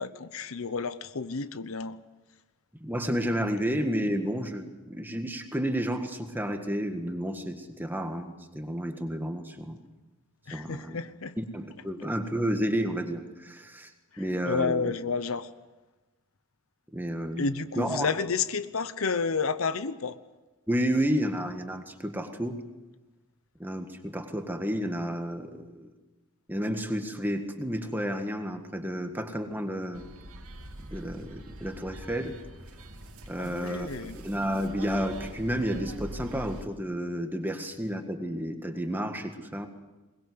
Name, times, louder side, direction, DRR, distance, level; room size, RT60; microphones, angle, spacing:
voice 1, 0.0-2.0 10.5-11.4 14.1-15.5 17.4-20.2 33.4-34.2, left 5 dB, 70° left, 13 dB, 0.9 m, -31 dB
voice 2, 2.8-9.8 10.5-11.0 11.4-13.9 14.2-14.8 16.9-17.5 17.8-18.1 20.7-22.6 23.6-25.9 26.5-30.1 30.8-32.4 33.3-39.7, equal, 10° right, 6 dB, 1.7 m, -31 dB
sound 1, 29.9-36.6, right 1 dB, 85° right, 2.5 m, -43 dB
22.5 x 21.0 x 8.0 m, 1.1 s
head